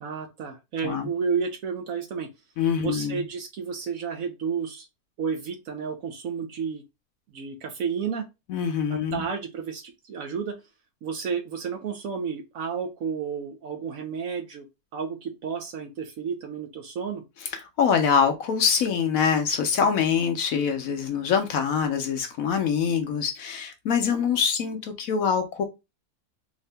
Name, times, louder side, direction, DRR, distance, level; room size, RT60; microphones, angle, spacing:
voice 1, 0.0-2.3 2.8-4.9 5.2-6.8 7.3-8.3 8.9-10.5 11.0-14.7 14.9-17.2, right 6 dB, 65° right, 0.9 m, -31 dB
voice 2, 2.6-3.2 8.5-9.3 17.4-25.6, left 7 dB, 65° left, 1.0 m, -24 dB
3.6 x 2.7 x 3.3 m
omnidirectional pair, 1.8 m